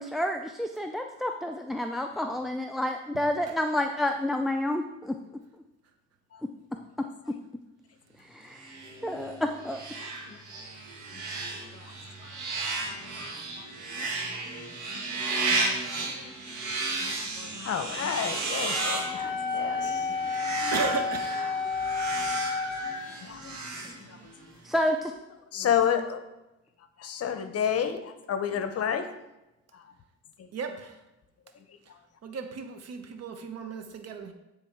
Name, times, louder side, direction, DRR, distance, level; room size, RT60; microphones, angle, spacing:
voice 1, 0.0-5.2 8.3-8.6 9.0-9.8 23.5-23.9 24.6-25.1, left 1 dB, ahead, 5 dB, 0.3 m, -29 dB
sound 1, 8.5-24.5, right 3 dB, 75° right, 1.5 m, -34 dB
voice 2, 12.2-12.6 13.2-13.7 13.9-14.5 14.9-16.3 17.0-20.5 21.9-22.6 23.2-23.5 24.0-24.2 25.5-26.2 27.0-29.1 29.7-29.9 30.4-30.5 31.5-32.0, left 8 dB, 55° left, 9 dB, 0.7 m, -32 dB
Wind instrument woodwind instrument, 18.7-23.0, left 4 dB, 15° left, 2.5 m, -31 dB
voice 3, 20.7-21.4 30.5-31.0 32.2-34.3, right 4 dB, 55° right, 7 dB, 0.9 m, -34 dB
9.0 x 3.5 x 4.5 m, 0.98 s
cardioid pair, 90°, 30 cm